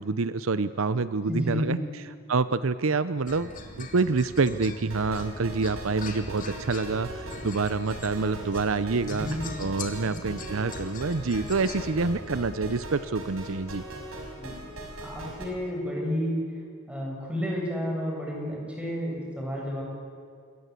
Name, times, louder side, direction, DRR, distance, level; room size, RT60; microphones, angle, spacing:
voice 1, 0.0-1.8 2.3-3.5 3.8-9.3 9.6-13.8, right 4 dB, 70° right, 14 dB, 0.7 m, -27 dB
voice 2, 1.3-1.7 9.0-9.4 10.1-10.3 14.4-14.5 15.0-16.5 16.9-19.8, equal, 5° right, -2 dB, 7.8 m, -31 dB
sound 1, 3.3-12.8, left 2 dB, 40° left, 3.1 m, -41 dB
sound 2, 4.9-15.5, right 1 dB, 90° right, 5.6 m, -40 dB
27.5 x 22.5 x 8.4 m, 2.3 s
head